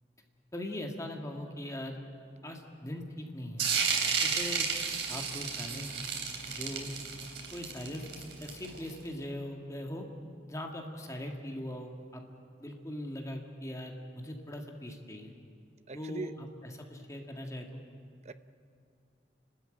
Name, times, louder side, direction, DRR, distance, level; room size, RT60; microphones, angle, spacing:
voice 1, 0.5-2.0 2.4-3.8 4.2-4.7 5.1-6.9 7.5-10.1 10.5-12.2 12.6-15.3 15.9-17.8, left 1 dB, 15° left, 2 dB, 1.7 m, -40 dB
sound 1, 3.6-8.9, right 6 dB, 90° right, 3.2 m, -32 dB
voice 2, 15.9-16.3 18.3-18.4, right 2 dB, 40° right, 12 dB, 0.6 m, -39 dB
29.5 x 13.0 x 9.0 m, 2.5 s
head